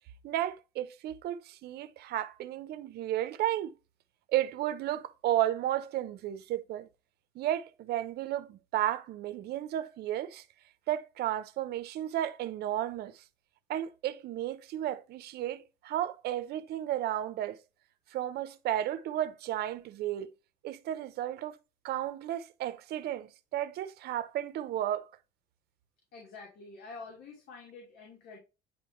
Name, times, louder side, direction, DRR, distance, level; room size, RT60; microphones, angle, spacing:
voice 1, 0.2-3.8 4.3-6.9 7.3-10.4 10.9-13.2 13.7-17.6 18.1-20.3 20.6-21.6 21.8-25.1, right 12 dB, 70° right, 0.8 m, -33 dB
voice 2, 26.1-28.4, left 4 dB, 70° left, 2.6 m, -47 dB
9.4 x 3.4 x 3.1 m
cardioid pair, 110°, 17 cm